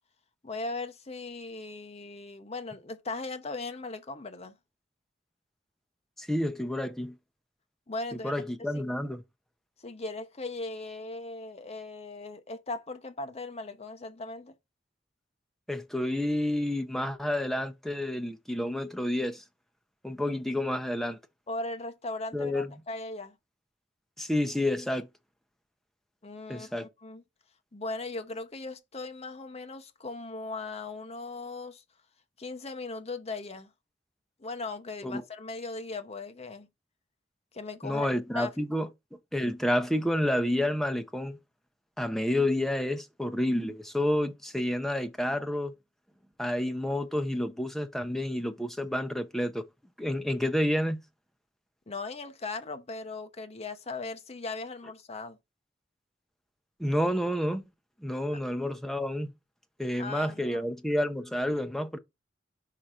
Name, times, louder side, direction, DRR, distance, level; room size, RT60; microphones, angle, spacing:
voice 1, 0.4-4.6 7.9-8.8 9.8-14.5 21.5-23.4 26.2-27.2 27.7-31.8 32.4-33.7 34.4-36.7 37.5-38.1 38.3-38.5 51.9-55.4 58.3-58.4 59.9-60.7, left 3 dB, 35° left, 0.8 m, -38 dB
voice 2, 6.2-7.2 8.2-9.2 15.7-19.4 20.0-21.2 22.3-22.7 24.2-25.1 26.5-26.9 35.0-35.2 37.8-38.9 39.3-41.4 42.0-45.7 46.4-49.6 50.0-51.0 56.8-57.6 58.0-59.3 59.8-62.0, left 1 dB, ahead, 0.7 m, -29 dB
5.8 x 3.8 x 4.9 m
head